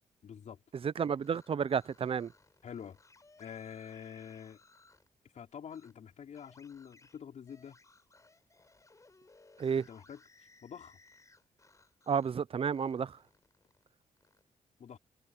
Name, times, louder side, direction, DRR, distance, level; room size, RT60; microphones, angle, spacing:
voice 1, 0.2-0.6 2.6-3.0 3.4-4.6 5.3-7.8 9.9-10.2 10.6-11.0 14.8-15.0, left 8 dB, 65° left, 4.1 m, -46 dB
voice 2, 0.8-2.3 9.6-9.9 12.1-13.2, right 7 dB, 45° right, 0.6 m, -31 dB
sound 1, 1.1-5.1 5.7-5.9 6.3-12.4 12.7-14.4, left 3 dB, 25° left, 4.8 m, -63 dB
cardioid pair, 100°, 13 cm